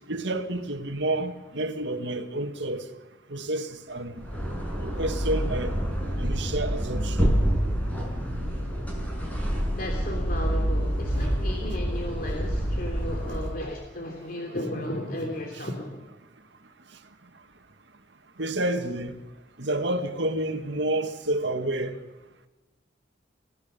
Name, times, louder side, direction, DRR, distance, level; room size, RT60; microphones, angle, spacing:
voice 1, 0.1-2.9 3.3-4.2 4.8-5.8 6.2-7.3 18.4-19.2 19.6-22.0, right 1 dB, 65° right, 2.0 m, -29 dB
sound 1, 4.1-13.7, equal, 10° left, 6.1 m, -27 dB
voice 2, 9.8-16.0, left 1 dB, 45° left, 3.2 m, -34 dB
29.5 x 17.0 x 6.9 m
head